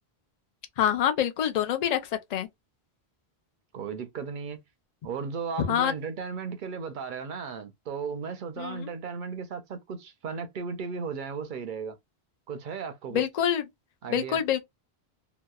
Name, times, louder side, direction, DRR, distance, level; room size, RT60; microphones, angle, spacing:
voice 1, 0.8-2.0 2.3-2.5 5.6-5.9 8.6-8.9 13.1-13.6 14.1-14.6, left 9 dB, 55° left, 0.5 m, -26 dB
voice 2, 3.7-4.6 5.0-12.0 12.5-13.2 14.0-14.4, right 5 dB, 60° right, 0.6 m, -35 dB
2.8 x 2.0 x 2.2 m
omnidirectional pair, 1.1 m